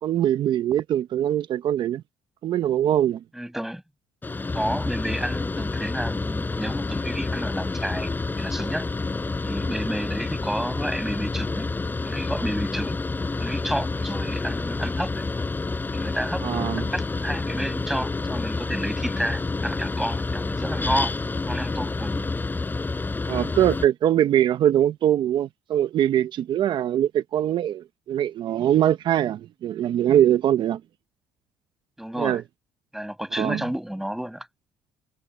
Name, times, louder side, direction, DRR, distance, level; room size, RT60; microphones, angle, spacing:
voice 1, 0.0-2.0 2.4-3.2 16.4-16.8 23.3-30.8 32.2-32.4 33.4-33.6, right 11 dB, 60° right, 0.7 m, -22 dB
voice 2, 3.3-3.8 4.5-8.1 8.4-8.9 9.4-11.7 12.0-13.0 13.4-15.2 15.9-21.1 21.5-22.3 32.0-32.4 32.9-34.5, equal, 5° right, 5.3 m, -31 dB
Mechanical fan, 4.2-23.9, left 3 dB, 20° left, 7.9 m, -28 dB
cardioid pair, 90°, 9 cm